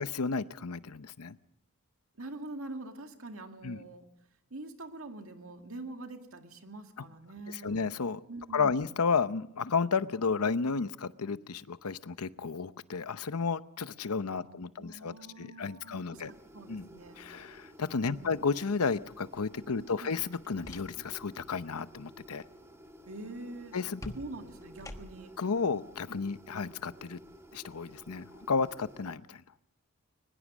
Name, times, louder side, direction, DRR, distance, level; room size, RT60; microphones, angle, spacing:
voice 1, 0.0-1.4 3.6-3.8 7.5-8.2 8.5-16.3 16.7-16.9 17.2-22.4 23.7-24.1 25.4-27.2 27.5-29.4, left 5 dB, 85° left, 14 dB, 0.8 m, -32 dB
voice 2, 2.2-4.1 4.5-7.9 8.3-8.8 14.4-17.2 18.1-18.4 19.7-20.1 23.1-23.8 24.1-25.3, right 2 dB, 65° right, 5 dB, 2.1 m, -45 dB
sound 1, 16.1-29.1, equal, 15° right, 2.3 m, -54 dB
sound 2, 20.2-21.3 21.6-21.9 24.0-25.4, left 1 dB, 15° left, 1.2 m, -47 dB
22.5 x 20.5 x 6.2 m, 0.78 s
head